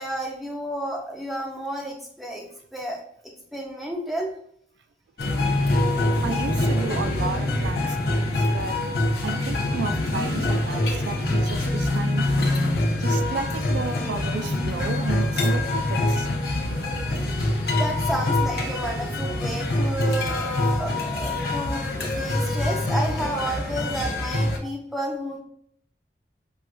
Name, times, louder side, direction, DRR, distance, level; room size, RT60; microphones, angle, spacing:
voice 1, 0.0-2.5 2.7-3.0 3.5-4.3 17.7-25.4, right 1 dB, ahead, -1 dB, 0.6 m, -31 dB
sound 1, 5.2-24.6, left 1 dB, 60° left, 0.7 m, -24 dB
voice 2, 6.2-8.8 9.2-12.2 13.0-16.3, right 4 dB, 70° right, 8 dB, 0.3 m, -33 dB
5.8 x 2.5 x 2.3 m, 0.63 s
head